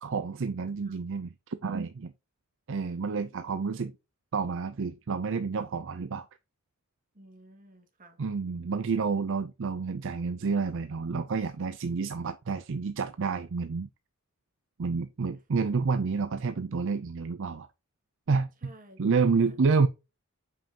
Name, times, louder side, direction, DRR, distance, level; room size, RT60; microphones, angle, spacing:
voice 1, 0.0-2.1 2.7-3.9 4.3-6.3 8.2-13.9 14.8-17.7 18.3-18.7 19.0-19.9, right 5 dB, 60° right, 0.5 m, -29 dB
voice 2, 7.1-8.2 18.6-19.6, right 1 dB, 40° right, 2.1 m, -54 dB
7.6 x 5.5 x 2.8 m
head